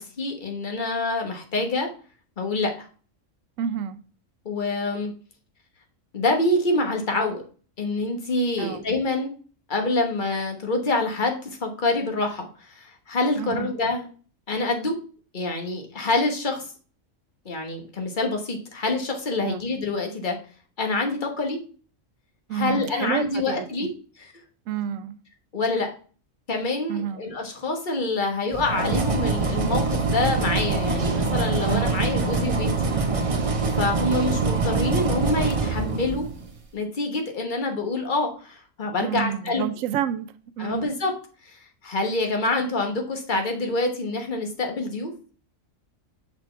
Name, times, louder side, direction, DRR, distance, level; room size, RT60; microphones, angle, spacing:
voice 1, 0.0-1.9 2.4-2.9 4.4-5.1 6.1-7.4 7.8-9.3 9.7-14.1 14.5-15.0 15.3-16.7 17.4-20.4 20.8-21.6 22.5-23.9 24.2-24.3 25.5-25.9 26.5-32.7 33.7-36.3 36.7-39.7 40.6-41.1 41.5-41.6 41.8-45.1, left 2 dB, 40° left, 1.3 m, -26 dB
voice 2, 3.6-4.0 8.6-8.8 13.4-13.7 19.4-19.6 22.5-23.9 24.7-25.2 26.9-27.2 31.7-32.0 39.0-40.3 40.6-40.9, right 9 dB, 90° right, 1.0 m, -29 dB
sound 1, 28.5-36.5, right 4 dB, 35° right, 0.7 m, -24 dB
6.1 x 4.2 x 4.4 m
omnidirectional pair, 1.3 m